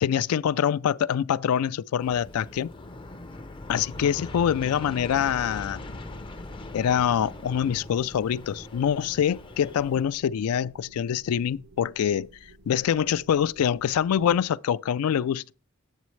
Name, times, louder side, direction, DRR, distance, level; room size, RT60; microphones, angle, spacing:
voice 1, 0.0-2.7 3.7-5.8 6.7-12.3 12.7-15.5, left 8 dB, 85° left, 0.3 m, -25 dB
Aircraft, 2.0-10.0, left 2 dB, 20° left, 0.4 m, -41 dB
sound 1, 3.9-14.5, right 2 dB, 80° right, 0.8 m, -54 dB
8.2 x 7.5 x 3.1 m
head